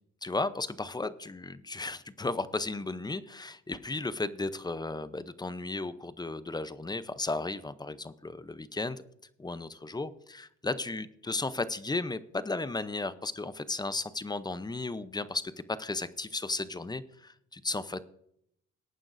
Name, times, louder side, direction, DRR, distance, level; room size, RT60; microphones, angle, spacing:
voice 1, 0.2-9.0 9.4-18.0, left 3 dB, 15° left, 14 dB, 0.6 m, -35 dB
18.5 x 9.0 x 2.6 m, 0.73 s
cardioid pair, 90°, 30 cm